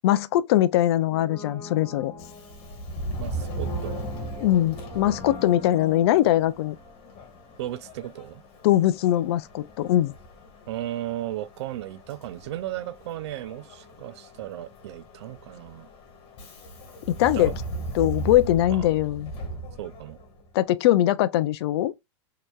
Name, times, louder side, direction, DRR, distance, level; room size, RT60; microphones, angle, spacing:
voice 1, 0.0-2.1 4.4-6.8 8.6-10.1 17.1-17.5 17.9-19.3 20.5-21.9, left 13 dB, 60° left, 0.4 m, -21 dB
Brass instrument, 1.0-7.9 8.1-8.2, left 1 dB, 20° left, 2.5 m, -43 dB
Subway metro underground, 2.1-20.5, right 1 dB, 40° left, 1.6 m, -38 dB
voice 2, 3.2-4.0 7.6-8.4 10.7-15.9 17.3-17.5 18.7-18.9 19.8-20.2, right 13 dB, 65° right, 0.4 m, -35 dB
4.3 x 2.9 x 2.3 m
hypercardioid pair, 115°, 15 cm